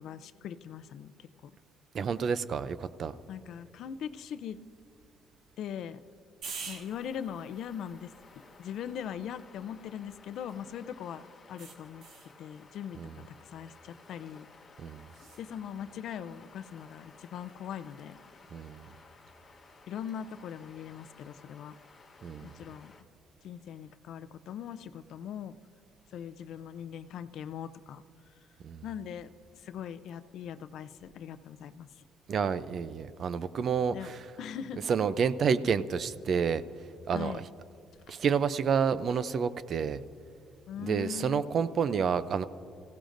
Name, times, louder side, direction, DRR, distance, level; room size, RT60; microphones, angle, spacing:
voice 1, 0.0-1.5 3.3-4.6 5.6-6.0 6.6-8.1 8.6-11.2 11.5-12.0 12.4-13.0 13.4-14.5 15.4-18.2 19.9-21.8 22.4-22.9 23.4-25.6 26.1-28.0 28.8-32.0 33.9-34.1 34.4-34.9 37.1-37.4 40.7-41.4, left 9 dB, 60° left, 12 dB, 0.5 m, -40 dB
voice 2, 1.9-3.1 13.0-13.2 14.8-15.1 18.5-18.9 22.2-22.5 28.6-28.8 32.3-34.3 34.9-36.6 37.1-37.5 38.1-40.0 40.8-42.4, right 6 dB, 40° right, 14 dB, 0.4 m, -29 dB
sound 1, 6.4-10.8 11.6-12.4 15.1-15.4, right 5 dB, 60° right, 1.5 m, -48 dB
sound 2, 6.6-23.0, left 4 dB, 30° left, 1.1 m, -56 dB
28.5 x 16.0 x 2.6 m, 2.4 s
cardioid pair, 165°, 0 cm